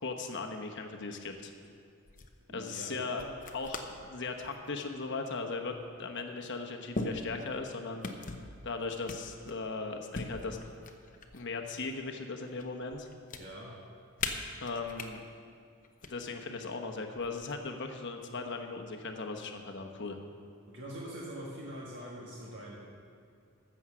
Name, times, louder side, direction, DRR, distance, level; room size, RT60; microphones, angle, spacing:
voice 1, 0.0-1.5 2.5-3.2 3.5-8.1 8.6-10.6 11.3-13.1 14.6-15.2 16.1-20.2, left 3 dB, 55° left, 4 dB, 1.0 m, -38 dB
sound 1, 1.2-1.7 2.1-2.4 3.2-4.0 4.4-4.8 5.8-5.9 6.9-7.7 8.0-8.5 9.1-9.7 10.1-11.5 11.9-12.6 12.9-13.4 14.2-15.1 15.8-16.1 17.1-17.7, left 3 dB, 35° left, 0.8 m, -40 dB
voice 2, 2.5-3.3 13.4-13.7 20.7-22.8, right 1 dB, 55° right, -5 dB, 1.6 m, -43 dB
14.0 x 7.2 x 6.1 m, 2.4 s
head